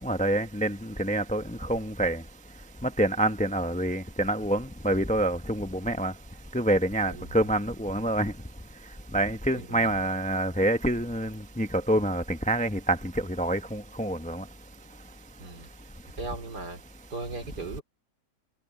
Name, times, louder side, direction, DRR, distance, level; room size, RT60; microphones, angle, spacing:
voice 1, 0.0-2.2 2.8-6.1 6.5-8.3 9.1-13.1 13.4-14.4, right 1 dB, 10° left, 0.3 m, -27 dB
voice 2, 7.0-7.5 9.5-10.1 15.4-15.7 16.2-16.8 17.1-17.8, right 3 dB, 75° right, 4.3 m, -38 dB
omnidirectional pair, 1.8 m